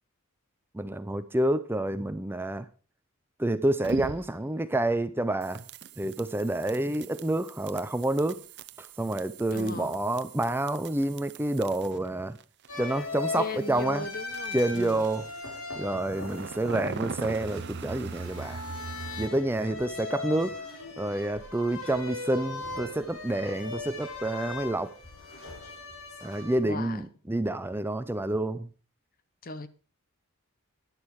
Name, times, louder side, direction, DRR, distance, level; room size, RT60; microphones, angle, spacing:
voice 1, 0.7-2.7 3.4-5.6 6.0-8.4 8.8-12.4 12.8-14.1 14.5-15.2 15.8-18.6 19.2-20.6 21.0-24.9 26.2-28.7, right 1 dB, 10° right, 0.5 m, -28 dB
sound 1, 3.8-4.5 5.4-12.1 12.3-15.5 16.0-19.3, right 4 dB, 55° right, 0.7 m, -41 dB
voice 2, 9.5-10.0 13.4-15.0 26.6-27.0 29.4-29.7, left 3 dB, 40° left, 0.9 m, -37 dB
sound 2, 12.7-26.6, left 3 dB, 70° left, 4.1 m, -39 dB
11.5 x 10.5 x 4.7 m
head